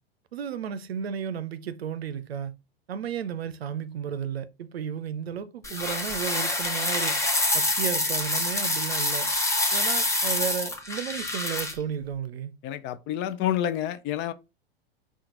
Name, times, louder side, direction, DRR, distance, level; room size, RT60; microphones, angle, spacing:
voice 1, 0.3-2.5 2.9-7.2 7.5-9.3 9.7-12.5, right 8 dB, 85° right, 0.6 m, -33 dB
sound 1, 5.6-11.7, left 2 dB, 10° left, 0.8 m, -26 dB
voice 2, 12.6-14.3, left 11 dB, 40° left, 0.5 m, -28 dB
4.4 x 2.4 x 3.8 m
hypercardioid pair, 100°, 30 cm